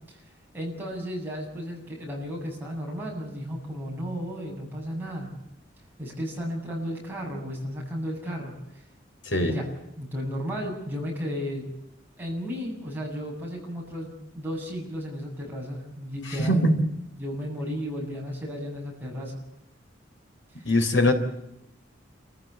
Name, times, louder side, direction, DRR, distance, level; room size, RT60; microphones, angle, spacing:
voice 1, 0.1-5.4 6.0-8.8 9.4-11.7 12.2-16.9 17.2-19.4 20.5-20.7, equal, 10° right, -3 dB, 7.9 m, -34 dB
voice 2, 16.4-16.7 20.7-21.1, left 1 dB, 70° left, 6 dB, 3.7 m, -21 dB
29.0 x 15.0 x 8.5 m, 0.87 s
head